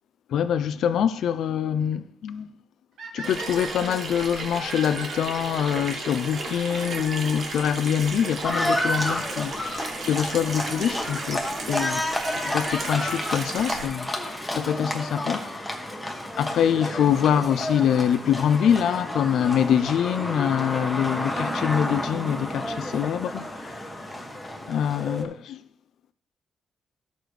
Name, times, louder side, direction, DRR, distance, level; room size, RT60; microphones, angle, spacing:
voice 1, 0.3-2.5 3.1-12.0 12.3-15.5 16.4-23.7 24.7-25.6, left 9 dB, 85° left, 0.5 m, -25 dB
sound 1, 3.0-5.2 6.7-7.7 8.7-8.8 9.5-9.6 9.7-9.8 11.7-12.0 14.8-14.9 15.9-16.0 17.5-17.6 17.9-18.0 18.2-18.3 18.5-18.6 18.7-18.8 19.0-19.1 19.3-19.4, right 4 dB, 80° right, 1.4 m, -39 dB
Water tap faucet / Sink (filling or washing), 3.2-13.9, right 3 dB, 50° right, 1.3 m, -34 dB
Livestock farm animals working animals, 8.4-25.2, left 1 dB, 5° left, 1.1 m, -31 dB
13.5 x 6.5 x 3.3 m
wide cardioid pair, 155°, 0 cm